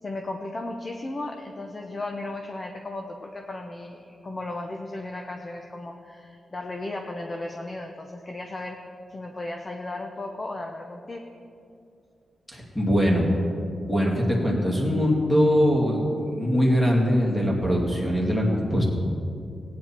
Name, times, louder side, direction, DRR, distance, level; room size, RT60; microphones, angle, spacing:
voice 1, 0.0-8.8 9.1-11.3, left 2 dB, 30° left, 3 dB, 0.8 m, -35 dB
voice 2, 12.5-13.3 13.8-18.8, equal, 15° left, -2 dB, 2.5 m, -22 dB
17.5 x 9.4 x 4.4 m, 2.6 s
wide cardioid pair, 120°, 0 cm